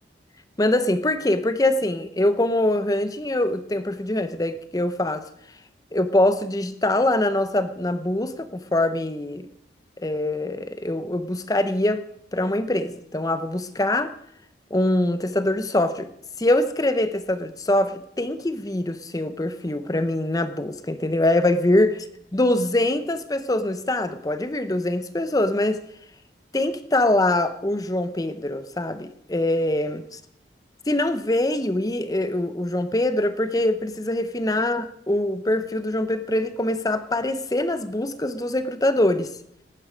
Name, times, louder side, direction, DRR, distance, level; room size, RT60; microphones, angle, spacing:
voice 1, 0.6-5.3 5.9-9.5 10.0-12.0 12.3-14.1 14.7-16.1 16.4-22.0 22.3-25.8 26.5-30.0 30.9-39.3, left 1 dB, 20° left, 11 dB, 0.7 m, -23 dB
19.0 x 9.3 x 5.1 m, 0.75 s
head